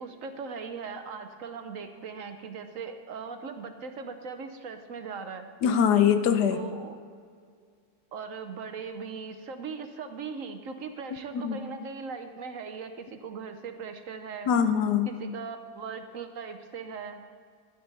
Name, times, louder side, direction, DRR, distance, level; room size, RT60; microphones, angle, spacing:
voice 1, 0.0-5.5 6.5-7.0 8.1-14.5 15.1-17.2, right 5 dB, 60° right, 7 dB, 1.0 m, -39 dB
voice 2, 5.6-6.6 11.3-11.6 14.5-15.1, left 8 dB, 90° left, 9 dB, 1.3 m, -22 dB
12.5 x 11.0 x 4.1 m, 2.1 s
omnidirectional pair, 1.7 m